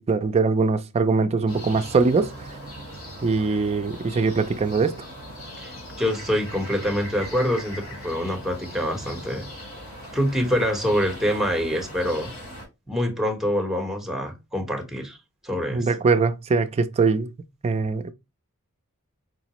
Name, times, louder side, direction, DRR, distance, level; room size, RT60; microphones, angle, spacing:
voice 1, 0.0-2.3 3.2-5.0 15.7-17.3 17.6-18.1, right 4 dB, 30° right, 0.3 m, -22 dB
sound 1, 1.5-12.7, equal, 70° left, 2.3 m, -39 dB
voice 2, 5.6-9.5 10.1-12.3 12.9-15.2 15.4-15.9, equal, ahead, 0.9 m, -25 dB
4.6 x 2.0 x 2.9 m
head